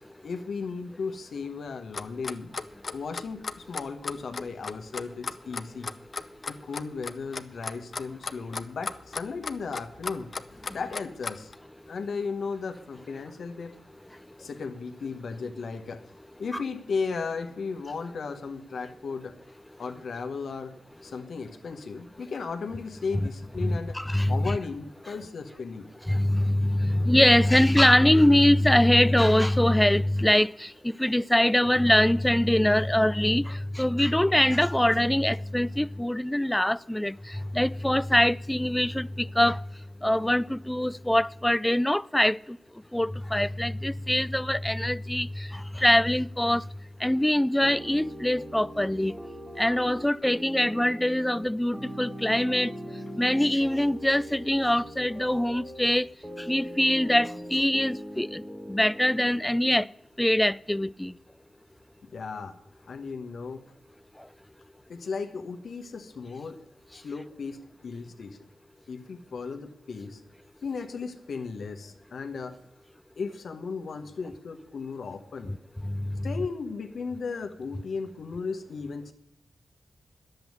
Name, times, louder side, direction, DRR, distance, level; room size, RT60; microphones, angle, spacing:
voice 1, 0.2-2.5 2.9-5.9 6.5-10.3 10.7-11.5 11.9-13.7 14.4-16.0 16.4-19.4 19.8-20.7 21.0-24.0 24.3-25.9 62.1-62.5 62.8-63.6 64.9-66.6 66.9-68.4 68.9-70.2 70.6-72.6 73.2-75.5 76.2-79.1, left 5 dB, 70° left, 1.3 m, -35 dB
Clock, 1.9-11.5, left 4 dB, 55° left, 0.7 m, -35 dB
voice 2, 23.6-24.6 26.1-39.6 40.0-42.6 42.9-46.7 47.0-49.1 49.6-52.7 53.2-56.1 56.4-59.9 60.2-61.1 75.8-76.2, left 1 dB, 10° left, 0.4 m, -23 dB
sound 1, 47.6-59.4, equal, 5° right, 1.7 m, -40 dB
10.5 x 7.9 x 9.5 m
supercardioid pair, 45°, 0 cm